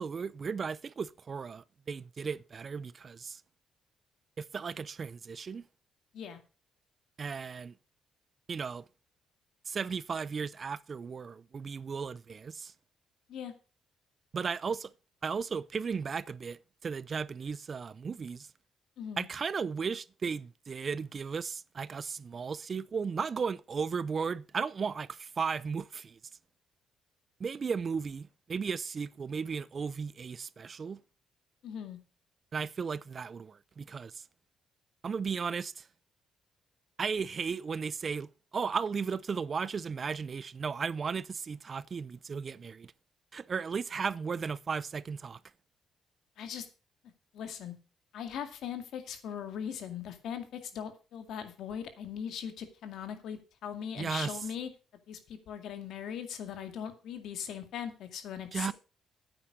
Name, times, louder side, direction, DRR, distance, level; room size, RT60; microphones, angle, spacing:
voice 1, 0.0-3.4 4.4-5.6 7.2-7.7 8.5-8.8 9.7-12.7 14.3-14.9 15.2-18.5 19.2-26.2 27.4-31.0 32.5-34.2 35.0-35.9 37.0-42.9 43.3-45.4 54.0-54.3 58.5-58.7, right 5 dB, 40° right, 0.5 m, -35 dB
voice 2, 31.6-32.0 46.4-46.7 47.3-47.7 48.1-54.7 55.1-58.7, left 8 dB, 75° left, 2.2 m, -40 dB
9.6 x 8.9 x 5.1 m
cardioid pair, 90°, 0 cm